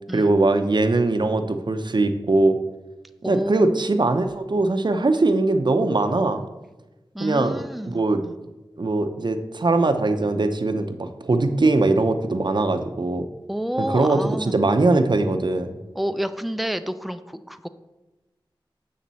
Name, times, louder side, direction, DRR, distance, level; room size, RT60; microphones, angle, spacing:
voice 1, 0.1-2.6 3.3-6.4 7.2-8.2 8.8-13.2 13.8-15.8, right 2 dB, 60° right, 7 dB, 0.7 m, -21 dB
voice 2, 3.2-3.8 7.1-8.4 13.5-14.6 16.0-17.7, equal, ahead, 10 dB, 0.4 m, -29 dB
7.4 x 6.5 x 4.1 m, 1.1 s
wide cardioid pair, 65°, 9 cm